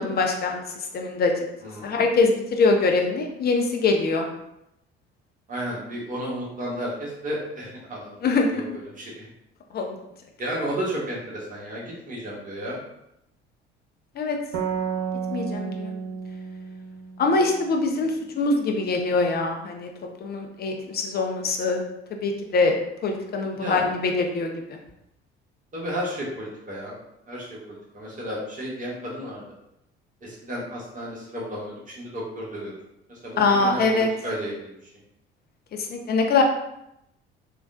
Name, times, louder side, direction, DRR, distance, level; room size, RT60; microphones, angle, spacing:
voice 1, 0.0-1.4 1.8-4.3 8.2-8.6 9.7-10.0 14.2-14.4 15.3-15.9 17.2-19.9 20.2-21.8 22.2-22.8 23.0-24.8 33.4-34.1 35.7-36.4, left 3 dB, 30° left, 3 dB, 0.6 m, -23 dB
voice 2, 1.6-2.0 5.5-8.2 8.5-9.3 10.4-12.8 23.5-23.8 25.7-26.9 27.3-29.4 30.2-32.7 33.1-34.8, equal, 25° right, -5 dB, 1.2 m, -33 dB
sound 1, 14.5-18.0, right 6 dB, 65° right, 0.6 m, -32 dB
3.4 x 2.2 x 2.5 m, 0.82 s
figure-of-eight pair, 55°, 31 cm